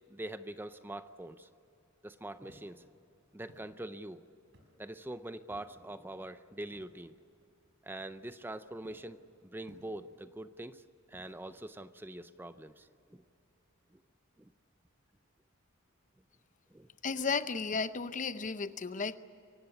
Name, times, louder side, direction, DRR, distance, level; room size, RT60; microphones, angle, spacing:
voice 1, 0.1-1.5 2.0-2.8 3.3-4.2 4.8-7.1 7.8-10.8 11.1-13.2 14.4-14.5 16.7-16.9, right 1 dB, 10° right, 12 dB, 0.5 m, -44 dB
Walk footsteps, 2.4-2.8 3.5-3.7 4.5-4.9 5.5-5.8 6.7-7.0 8.0-8.4 8.8-9.1 9.7-10.2 11.1-11.6, equal, 60° right, 4.9 m, -60 dB
voice 2, 17.0-19.2, left 5 dB, 40° left, 13 dB, 0.7 m, -34 dB
24.0 x 17.5 x 9.9 m, 2.7 s
head